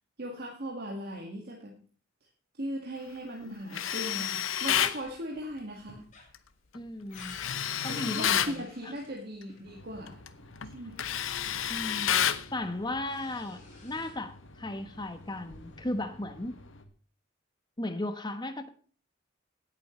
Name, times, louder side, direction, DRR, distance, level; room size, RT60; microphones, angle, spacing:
voice 1, 0.2-1.7 2.2-2.3 2.6-6.1 7.9-10.2 10.6-11.0, equal, 55° right, 0 dB, 2.0 m, -38 dB
Tools, 3.7-5.0 7.2-8.6 10.1-10.3 10.6-12.5, left 9 dB, 90° left, 0.8 m, -29 dB
sound 1, 5.0-5.4 5.7-9.7 10.8-10.9 11.3-12.2 12.6-14.3 15.2-16.0, left 3 dB, 40° left, 4.6 m, -53 dB
voice 2, 6.7-7.4 7.8-8.6 11.7-12.1 12.5-16.6 17.8-18.7, left 1 dB, 20° left, 9 dB, 1.2 m, -36 dB
sound 2, 9.7-16.9, left 1 dB, 70° left, 1.6 m, -52 dB
18.0 x 8.2 x 3.2 m, 0.41 s
head